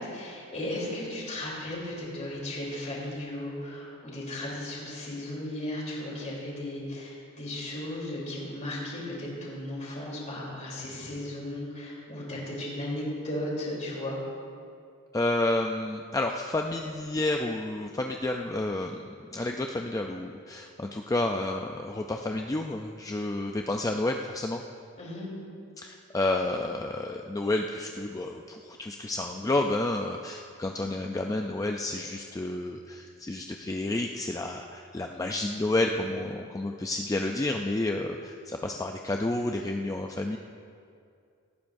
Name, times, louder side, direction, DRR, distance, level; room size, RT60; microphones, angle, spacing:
voice 1, 0.0-14.2 25.0-25.3, left 1 dB, 35° left, -5 dB, 3.4 m, -35 dB
voice 2, 15.1-19.0 19.3-24.6 25.8-40.4, left 2 dB, 15° left, 3 dB, 0.4 m, -30 dB
18.5 x 14.0 x 2.6 m, 2.4 s
head